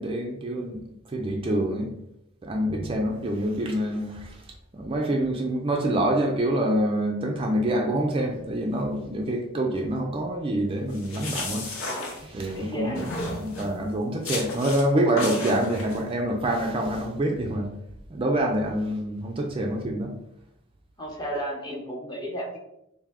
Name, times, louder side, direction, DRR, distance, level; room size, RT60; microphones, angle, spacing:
voice 1, 0.0-1.9 2.4-4.4 4.7-11.6 12.1-17.7 18.1-20.1, right 1 dB, 25° right, 2 dB, 0.4 m, -26 dB
sound 1, 10.9-12.6 13.0-13.8 14.2-14.8 15.2-16.0, left 2 dB, 90° left, 0.8 m, -33 dB
voice 2, 12.5-13.0 21.0-22.6, right 1 dB, 20° left, 0 dB, 0.8 m, -33 dB
3.3 x 2.7 x 3.6 m, 0.82 s
head